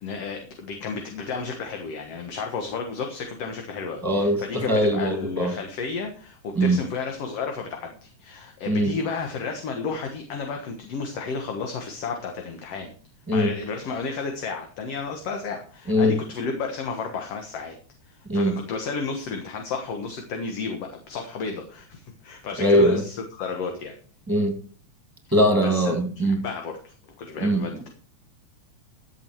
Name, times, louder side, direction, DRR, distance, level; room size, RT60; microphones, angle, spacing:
voice 1, 0.0-12.9 13.3-17.8 18.0-23.9 25.6-26.0 26.2-27.9, left 4 dB, 60° left, 2.4 m, -32 dB
voice 2, 4.0-5.6 6.5-6.8 8.7-9.0 13.3-13.5 15.9-16.2 18.3-18.6 22.6-23.0 24.3-24.6 25.3-26.4 27.4-27.7, equal, 10° right, 1.9 m, -21 dB
15.0 x 7.5 x 4.7 m
omnidirectional pair, 3.5 m